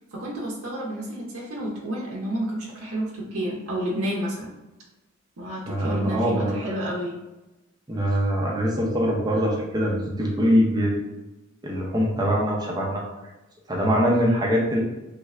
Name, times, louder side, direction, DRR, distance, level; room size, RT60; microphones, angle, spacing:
voice 1, 0.1-4.5 5.4-7.1, equal, 80° right, -4 dB, 0.7 m, -30 dB
voice 2, 5.7-6.6 7.9-11.0 11.6-13.0 13.7-14.8, equal, 20° right, -3 dB, 0.6 m, -23 dB
3.3 x 2.4 x 3.1 m, 1.0 s
head